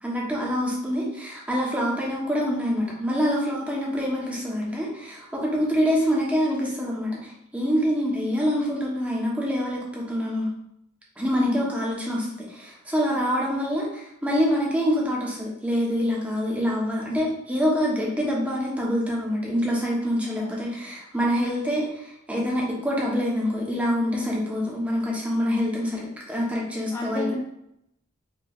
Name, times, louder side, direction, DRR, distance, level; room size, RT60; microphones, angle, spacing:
voice 1, 0.0-10.5 11.2-26.0 26.3-27.3, equal, 5° right, -4 dB, 1.0 m, -26 dB
voice 2, 20.3-20.6 26.9-27.4, left 1 dB, 15° left, -5 dB, 0.5 m, -31 dB
4.9 x 3.2 x 2.4 m, 0.79 s
head